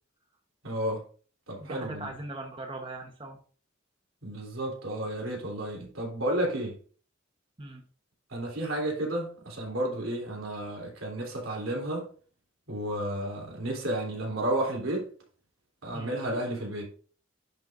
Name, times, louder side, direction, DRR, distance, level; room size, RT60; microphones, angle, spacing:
voice 1, 0.6-1.0 1.5-2.1 4.2-6.7 8.3-12.1 12.7-15.1 15.8-16.9, right 1 dB, 90° right, 3.4 m, -32 dB
voice 2, 1.6-3.4 7.6-7.8 15.9-16.1, right 2 dB, 25° right, 1.1 m, -40 dB
10.0 x 6.6 x 2.6 m
head